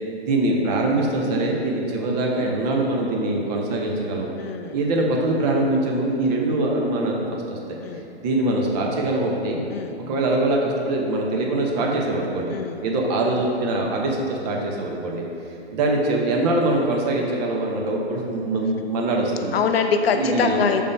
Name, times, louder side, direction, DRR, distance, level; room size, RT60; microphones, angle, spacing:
voice 1, 0.2-4.3 4.7-7.2 7.5-7.8 8.2-9.6 10.1-12.5 12.8-15.3 15.7-19.5 20.1-20.6, right 2 dB, 40° right, 0 dB, 0.9 m, -23 dB
voice 2, 4.4-4.8 7.8-8.0 9.7-9.9 12.5-12.8 19.5-20.8, left 6 dB, 70° left, 6 dB, 0.6 m, -23 dB
5.2 x 3.5 x 5.3 m, 2.8 s
hypercardioid pair, 120°, 32 cm